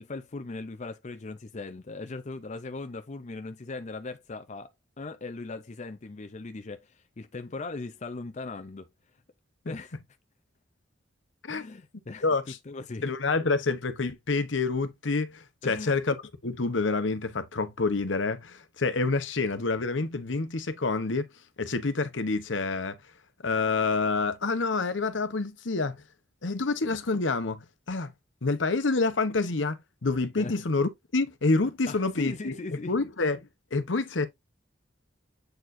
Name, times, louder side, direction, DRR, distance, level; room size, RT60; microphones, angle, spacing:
voice 1, 0.0-4.7 5.0-8.9 9.7-10.0 11.5-12.3 12.7-13.1 15.6-15.9 30.4-30.6 31.9-33.0, left 3 dB, 40° left, 0.6 m, -39 dB
voice 2, 12.2-12.6 13.0-16.2 16.4-21.3 21.6-23.0 23.4-26.0 26.4-28.1 28.4-34.3, left 3 dB, 75° left, 1.0 m, -28 dB
7.8 x 4.5 x 2.6 m
head